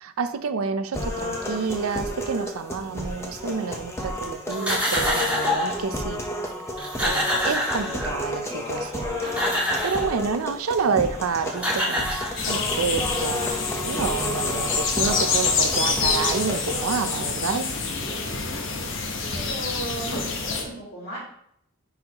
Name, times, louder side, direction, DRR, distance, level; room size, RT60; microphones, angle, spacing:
voice 1, 0.0-6.3 7.0-9.2 9.8-13.6 13.8-17.7, right 5 dB, 85° right, 11 dB, 0.5 m, -29 dB
sound 1, 0.9-16.9, left 1 dB, 15° left, 0.8 m, -32 dB
sound 2, 4.5-5.8 6.5-6.6 6.8-8.3 9.0-10.1 11.2-11.3 11.5-12.8, equal, 5° right, 1.9 m, -26 dB
sound 3, 12.4-20.6, left 4 dB, 60° left, 0.9 m, -26 dB
voice 2, 19.3-21.2, right 1 dB, 45° left, -8 dB, 2.9 m, -35 dB
10.0 x 4.1 x 2.9 m, 0.69 s
head